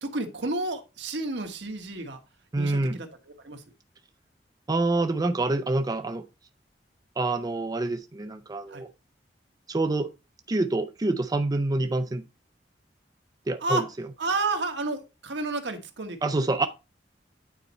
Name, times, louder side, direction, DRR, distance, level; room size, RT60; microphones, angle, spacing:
voice 1, 0.0-2.2 2.6-3.1 3.4-3.6 8.7-8.8 13.6-13.9 14.2-16.6, right 3 dB, 70° right, 6 dB, 1.3 m, -31 dB
voice 2, 2.5-3.0 4.7-6.2 7.2-8.9 9.7-10.1 10.5-12.2 13.5-13.8 16.2-16.7, right 2 dB, 20° right, 9 dB, 0.4 m, -26 dB
9.3 x 4.2 x 4.2 m, 0.28 s
head